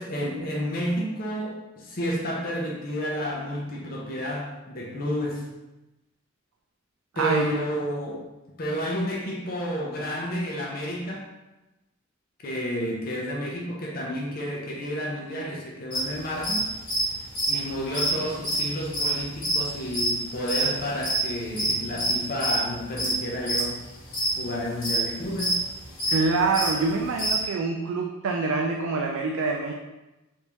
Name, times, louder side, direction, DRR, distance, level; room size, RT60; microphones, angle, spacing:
voice 1, 0.0-5.5 7.2-8.3 8.6-11.3 12.4-16.7 17.5-23.8 24.4-25.6, equal, 45° left, -2 dB, 0.6 m, -31 dB
voice 2, 7.1-7.6 26.1-29.7, right 3 dB, 75° right, 1 dB, 0.3 m, -26 dB
sound 1, 15.9-27.4, right 1 dB, 70° left, 1.4 m, -26 dB
3.4 x 2.6 x 3.0 m, 1.0 s
head